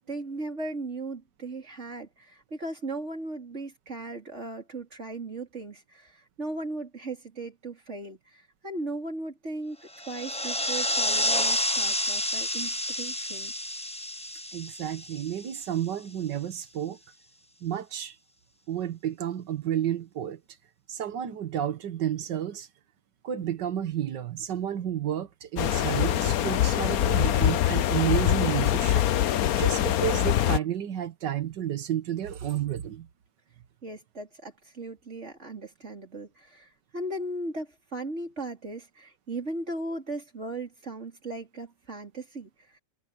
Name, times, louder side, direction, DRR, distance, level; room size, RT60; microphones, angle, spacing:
voice 1, 0.1-9.8 10.1-13.5 33.8-42.8, right 2 dB, 40° right, 4.4 m, -37 dB
sound 1, 9.9-15.8, left 1 dB, 10° left, 0.3 m, -29 dB
voice 2, 14.5-17.0 17.6-18.2 18.7-20.4 20.9-22.7 23.2-29.1 29.6-33.1, right 10 dB, 80° right, 1.8 m, -31 dB
sound 2, 25.6-30.6, left 12 dB, 65° left, 1.1 m, -24 dB
omnidirectional pair, 1.9 m